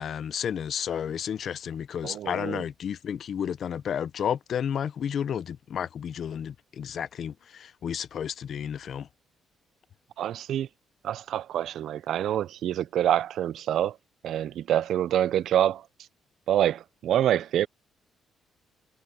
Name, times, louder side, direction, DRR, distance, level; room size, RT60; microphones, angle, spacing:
voice 1, 0.0-9.1, left 8 dB, 45° left, 0.5 m, -32 dB
voice 2, 2.0-2.6 10.2-10.7 11.0-14.0 14.2-15.9 16.5-17.7, right 11 dB, 60° right, 0.4 m, -26 dB
cardioid pair, 170°, 0 cm